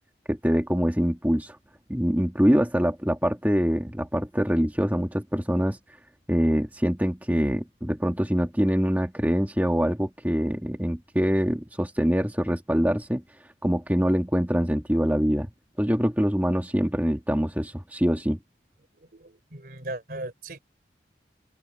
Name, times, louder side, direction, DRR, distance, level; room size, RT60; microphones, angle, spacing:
voice 1, 0.3-1.6 1.9-5.8 6.3-13.2 13.6-15.5 15.8-18.4, equal, 10° right, 2.0 m, -24 dB
voice 2, 18.9-20.6, right 2 dB, 50° right, 3.9 m, -38 dB
head